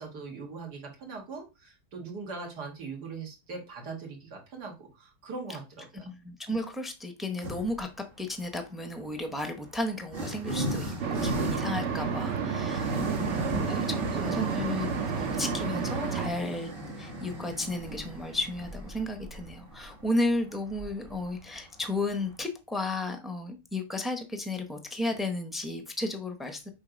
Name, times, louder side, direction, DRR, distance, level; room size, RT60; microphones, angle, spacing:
voice 1, 0.0-6.1 12.9-14.7, right 4 dB, 70° right, 2.4 m, -40 dB
voice 2, 6.0-7.9 8.2-13.0 13.5-14.9 15.1-16.7 17.0-26.7, left 2 dB, ahead, 0.5 m, -33 dB
sound 1, 7.4-7.9 8.9-22.4, right 1 dB, 35° right, 1.4 m, -37 dB
sound 2, 11.0-16.3, right 6 dB, 55° right, 1.0 m, -31 dB
7.5 x 3.1 x 5.1 m
omnidirectional pair, 1.9 m